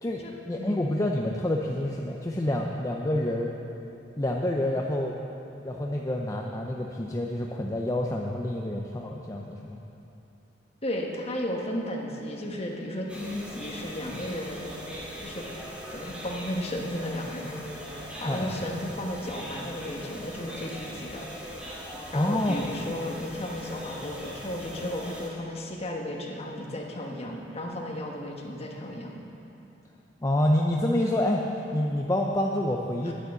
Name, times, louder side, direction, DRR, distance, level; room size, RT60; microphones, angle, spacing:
voice 1, 0.0-3.5 4.2-5.1 5.6-9.8 18.2-18.6 22.1-22.5 30.2-31.4 31.7-33.1, left 1 dB, 20° left, 0 dB, 0.6 m, -27 dB
voice 2, 10.8-14.7 15.2-15.4 15.9-21.3 22.1-29.2 33.0-33.1, left 1 dB, 35° left, -1 dB, 1.4 m, -34 dB
sound 1, 13.1-25.3, equal, 5° right, 2.1 m, -40 dB
10.0 x 9.8 x 6.9 m, 2.8 s
head